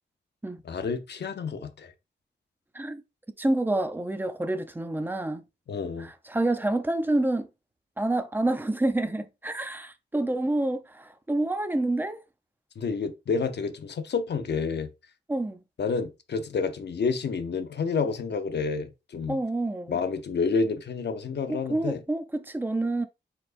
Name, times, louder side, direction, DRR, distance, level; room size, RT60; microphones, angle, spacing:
voice 1, 0.6-1.9 5.7-6.1 12.8-14.9 15.8-19.4 19.9-22.0, left 5 dB, 65° left, 0.7 m, -29 dB
voice 2, 3.4-5.4 6.0-7.5 8.0-12.2 15.3-15.6 19.3-20.0 21.5-23.1, right 2 dB, 10° right, 0.5 m, -28 dB
4.5 x 3.9 x 2.5 m
wide cardioid pair, 130°, 19 cm